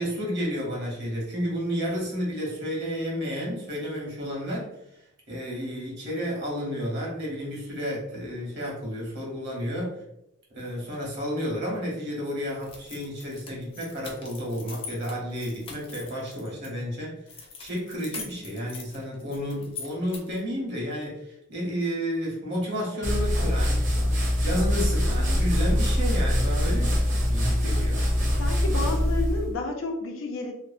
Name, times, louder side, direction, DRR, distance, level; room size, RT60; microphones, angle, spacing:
voice 1, 0.0-4.7 5.3-10.0 10.5-17.2 17.6-23.8 24.4-28.0, equal, 55° right, -3 dB, 1.0 m, -31 dB
sound 1, 12.6-16.7 17.3-20.5, left 5 dB, 30° left, 0.4 m, -42 dB
sound 2, 23.0-29.5, equal, 40° right, 0.6 m, -23 dB
voice 2, 28.1-30.5, left 2 dB, 85° left, 2 dB, 0.5 m, -31 dB
2.7 x 2.0 x 2.5 m, 0.80 s
head